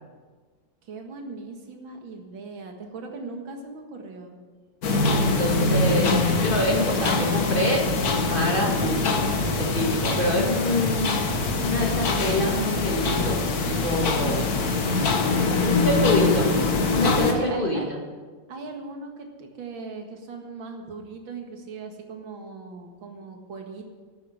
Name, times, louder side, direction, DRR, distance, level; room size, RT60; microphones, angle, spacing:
voice 1, 0.8-4.4 14.9-16.2 17.3-17.9 18.5-23.9, right 3 dB, 85° right, 3 dB, 2.5 m, -39 dB
sound 1, 4.8-17.3, left 3 dB, 55° left, 1.7 m, -24 dB
voice 2, 5.1-7.8 8.3-11.1 11.6-14.5 15.1-16.5 16.9-18.0, left 1 dB, 25° left, -1 dB, 2.3 m, -26 dB
11.5 x 9.4 x 7.6 m, 1.4 s
omnidirectional pair, 2.1 m